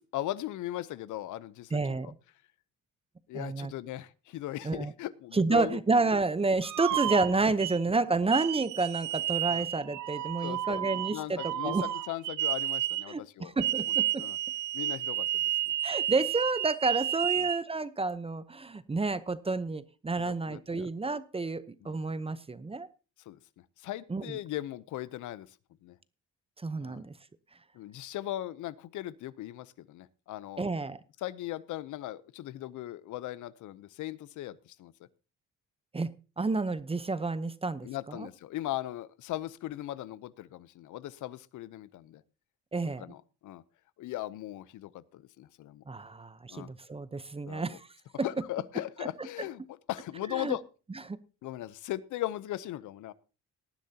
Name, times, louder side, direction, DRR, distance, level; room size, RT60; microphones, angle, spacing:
voice 1, 0.0-1.8 3.3-5.8 6.9-7.0 9.5-9.7 10.4-13.5 14.2-14.4 14.7-15.7 17.4-17.5 20.2-20.9 21.8-22.0 23.3-23.4 23.8-25.6 25.8-26.0 26.8-27.1 27.7-30.7 31.2-34.9 37.8-42.2 42.8-43.6 44.0-45.8 46.5-46.7 47.5-47.8 48.2-49.6 49.9-50.6 51.4-53.1, left 14 dB, 80° left, 18 dB, 0.7 m, -38 dB
voice 2, 1.7-2.1 3.3-3.7 4.6-4.9 5.3-11.9 13.1-14.2 15.8-22.9 24.1-24.4 26.6-27.1 30.6-31.0 35.9-36.1 36.4-38.3 42.7-43.0 45.9-47.9 50.3-50.6 51.1-51.2, right 3 dB, 20° right, 14 dB, 0.8 m, -30 dB
sound 1, 6.6-7.8 8.3-13.1 13.6-17.6, right 13 dB, 75° right, 0.7 m, -31 dB
18.5 x 10.5 x 2.8 m, 0.33 s
cardioid pair, 90°, 30 cm